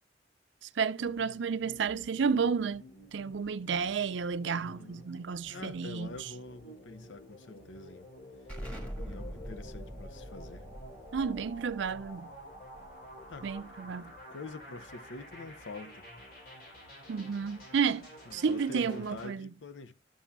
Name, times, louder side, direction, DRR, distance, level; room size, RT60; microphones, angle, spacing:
voice 1, 0.6-2.8 3.1-6.3 11.1-12.3 13.4-14.1 17.1-19.5, right 6 dB, 70° right, 0.4 m, -31 dB
sound 1, 1.0-19.3, equal, 55° left, 3.9 m, -51 dB
voice 2, 4.5-5.0 5.5-8.1 9.0-10.7 13.3-13.5 14.3-16.0 18.3-19.9, left 3 dB, 80° left, 0.7 m, -46 dB
Explosion, 8.5-13.9, equal, 5° left, 1.7 m, -44 dB
12.5 x 7.2 x 2.2 m
head